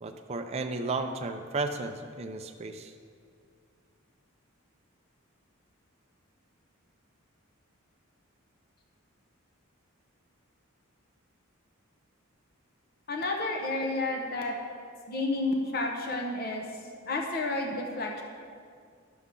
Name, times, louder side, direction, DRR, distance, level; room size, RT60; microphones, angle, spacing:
voice 1, 0.0-2.9, right 3 dB, 30° right, 5 dB, 0.4 m, -33 dB
voice 2, 13.1-14.5 15.1-16.6 17.1-18.2, left 2 dB, 45° left, 2 dB, 0.8 m, -30 dB
11.0 x 6.9 x 3.7 m, 2.2 s
head